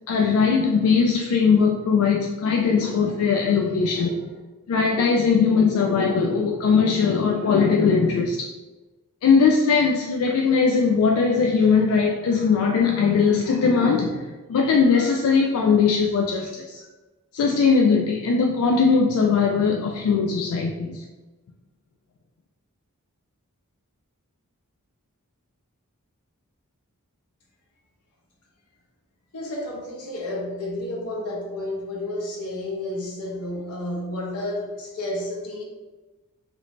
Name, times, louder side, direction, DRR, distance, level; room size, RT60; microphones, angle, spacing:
voice 1, 0.1-4.2 4.7-8.5 9.2-16.8 17.3-21.0, left 5 dB, 70° left, 1 dB, 0.3 m, -20 dB
voice 2, 29.3-35.6, left 1 dB, 90° left, -2 dB, 0.9 m, -31 dB
3.1 x 2.6 x 3.0 m, 1.2 s
head